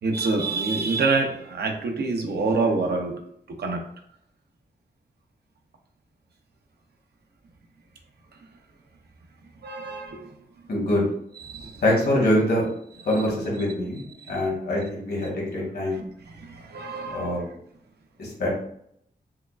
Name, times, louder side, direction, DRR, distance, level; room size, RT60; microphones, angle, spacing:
voice 1, 0.0-3.8 9.6-10.3 11.5-11.8 14.2-14.3 16.4-17.4, right 3 dB, 75° right, 3 dB, 0.6 m, -26 dB
voice 2, 10.7-11.0 11.8-12.6 13.0-16.0 17.1-17.5 18.2-18.5, left 1 dB, 70° left, -3 dB, 1.4 m, -24 dB
4.7 x 2.3 x 2.4 m, 0.70 s
wide cardioid pair, 155°, 17 cm